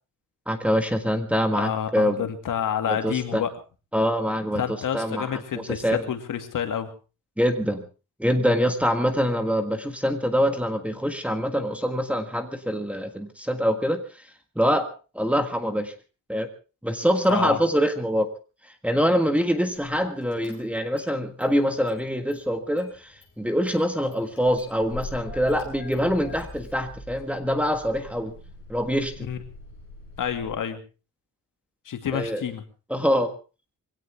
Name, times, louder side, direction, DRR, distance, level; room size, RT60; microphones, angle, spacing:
voice 1, 0.5-2.2 2.9-3.4 3.9-4.6 4.9-5.3 5.5-6.0 7.4-7.8 8.2-14.0 14.5-15.9 16.3-16.5 16.8-18.3 18.8-28.3 28.7-29.3 32.1-32.4 32.9-33.3, equal, 5° right, 7 dB, 1.6 m, -24 dB
voice 2, 1.5-3.5 4.5-6.9 17.3-17.6 29.3-29.4 30.2-30.8 31.9-32.6, left 9 dB, 70° left, 7 dB, 2.3 m, -28 dB
Car / Engine starting, 19.7-20.0 20.3-21.1 21.4-22.5 22.8-30.5, left 2 dB, 35° left, 8.0 m, -43 dB
22.5 x 17.5 x 3.5 m, 0.33 s
wide cardioid pair, 175°, 33 cm